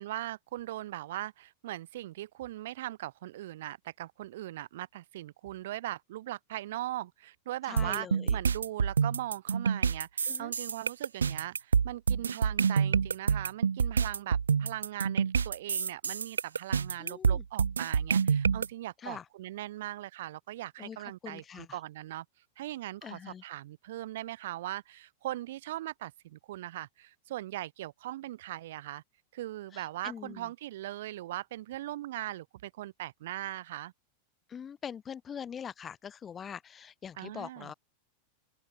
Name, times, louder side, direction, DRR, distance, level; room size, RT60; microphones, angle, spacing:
voice 1, 0.0-22.3 22.6-29.0 29.3-33.9 37.2-37.7, right 15 dB, 55° right, 3.5 m, -40 dB
voice 2, 7.7-8.4 10.3-10.5 17.0-17.4 19.0-19.3 20.8-21.0 21.2-21.8 23.0-23.4 29.7-30.5 34.5-37.7, left 7 dB, 20° left, 1.9 m, -43 dB
sound 1, 7.8-18.7, right 6 dB, 70° right, 0.7 m, -27 dB
open air
figure-of-eight pair, 90°, 0 cm